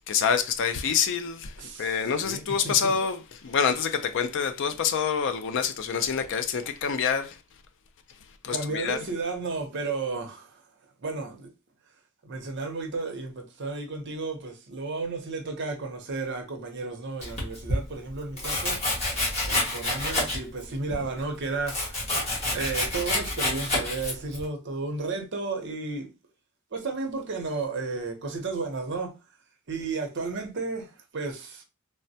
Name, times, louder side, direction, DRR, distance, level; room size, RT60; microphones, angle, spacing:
voice 1, 0.1-1.5 1.8-7.4 8.4-9.0, left 6 dB, 60° left, 0.4 m, -26 dB
voice 2, 1.6-2.9 6.0-6.3 8.5-10.6 11.0-11.5 12.2-18.8 19.4-26.1 26.7-29.1 29.7-31.6, right 3 dB, 55° right, 0.7 m, -33 dB
Domestic sounds home sounds, 17.2-17.8 18.4-20.6 20.9-24.4, left 1 dB, 30° left, 1.2 m, -28 dB
3.3 x 2.1 x 2.7 m
head